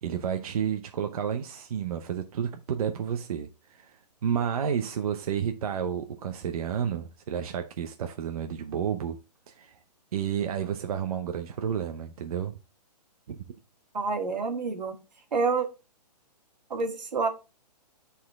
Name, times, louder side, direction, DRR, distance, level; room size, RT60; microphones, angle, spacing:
voice 1, 0.0-3.9 4.2-9.2 9.5-9.7 10.1-12.6 13.3-13.4, right 8 dB, 60° right, 0.8 m, -31 dB
voice 2, 13.9-15.0 15.3-15.7 16.7-17.3, right 4 dB, 90° right, 1.8 m, -27 dB
9.6 x 4.2 x 3.6 m
hypercardioid pair, 155°, 21 cm